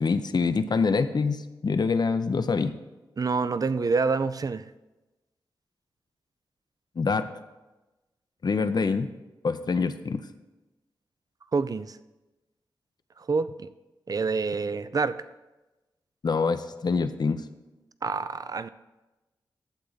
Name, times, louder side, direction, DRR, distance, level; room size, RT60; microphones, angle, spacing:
voice 1, 0.0-2.8 7.0-7.3 8.4-9.1 9.4-10.2 16.2-17.4, left 4 dB, 55° left, 10 dB, 0.7 m, -25 dB
voice 2, 3.2-4.7 11.5-12.0 13.2-13.7 14.1-15.2 18.0-18.7, right 4 dB, 45° right, 14 dB, 0.5 m, -27 dB
11.5 x 7.3 x 4.0 m, 1.1 s
cardioid pair, 45°, 8 cm